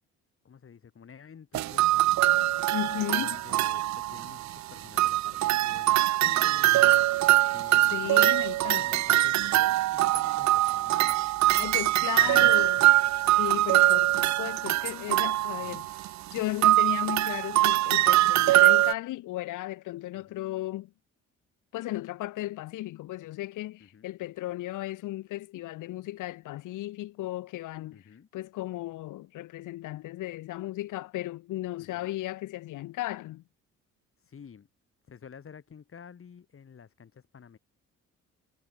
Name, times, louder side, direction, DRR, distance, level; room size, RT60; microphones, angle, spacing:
voice 1, 0.4-2.4 3.2-7.1 7.5-8.3 8.6-11.2 12.1-12.9 15.6-15.9 20.1-20.4 23.8-24.1 27.9-28.3 31.8-32.1 34.2-34.7 35.1-37.6, left 7 dB, 45° left, 4.3 m, -50 dB
sound 1, 1.5-4.6 5.0-18.9, right 16 dB, 65° right, 0.5 m, -23 dB
voice 2, 2.7-3.4 7.9-9.0 11.6-12.8 13.4-20.9 21.7-28.0 28.3-33.4, left 16 dB, 90° left, 2.3 m, -35 dB
cardioid pair, 90°, 30 cm